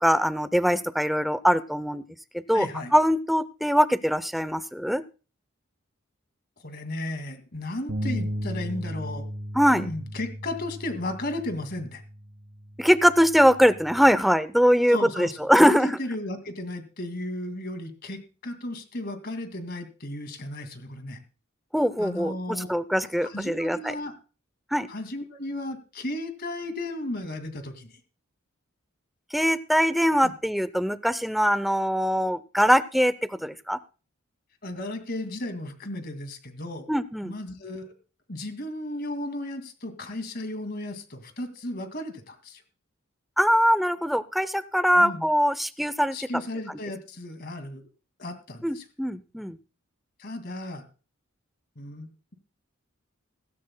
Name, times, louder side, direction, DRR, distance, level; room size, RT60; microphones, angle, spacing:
voice 1, 0.0-2.0 2.3-2.7 2.9-5.0 9.5-9.9 12.8-16.0 21.7-23.9 24.7-24.9 29.3-33.8 36.9-37.3 43.4-46.2 48.6-49.6, equal, ahead, 14 dB, 0.5 m, -22 dB
voice 2, 2.5-2.9 6.6-9.3 9.8-12.0 14.9-21.2 22.0-22.7 23.2-24.1 24.9-27.9 30.2-30.3 34.6-36.9 37.2-37.9 38.3-42.6 44.9-45.2 46.1-47.8 48.2-48.8 50.2-50.8 51.8-52.3, left 1 dB, 50° left, 8 dB, 2.2 m, -34 dB
sound 1, 7.9-14.1, equal, 80° right, 2.0 m, -36 dB
17.0 x 16.0 x 2.2 m, 0.34 s
head